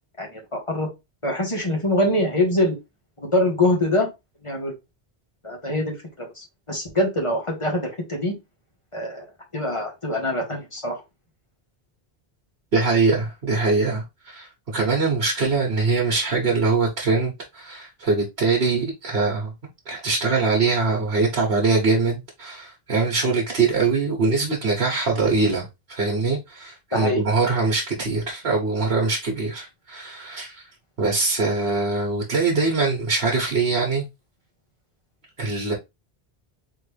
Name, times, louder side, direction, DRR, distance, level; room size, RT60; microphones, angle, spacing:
voice 1, 0.2-0.9 1.2-2.7 3.2-4.1 4.4-4.7 5.4-8.3 8.9-9.3 9.5-11.0 26.9-27.2, left 1 dB, 30° left, 1.3 m, -24 dB
voice 2, 12.7-19.5 19.9-30.6 31.0-34.1 35.4-35.7, right 4 dB, 65° right, 1.3 m, -23 dB
3.9 x 3.3 x 3.3 m
omnidirectional pair, 1.1 m